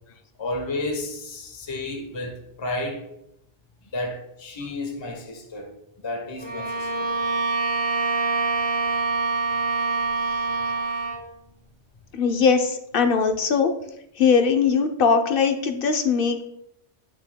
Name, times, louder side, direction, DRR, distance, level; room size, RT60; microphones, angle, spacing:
voice 1, 0.4-3.0 3.9-7.1 10.6-11.0, left 2 dB, 25° left, 2 dB, 0.9 m, -32 dB
Bowed string instrument, 6.4-11.3, right 3 dB, 65° right, 2.4 m, -25 dB
voice 2, 12.1-13.7 14.2-16.5, left 5 dB, 60° left, 7 dB, 0.8 m, -20 dB
10.5 x 6.2 x 2.2 m, 0.78 s
omnidirectional pair, 1.2 m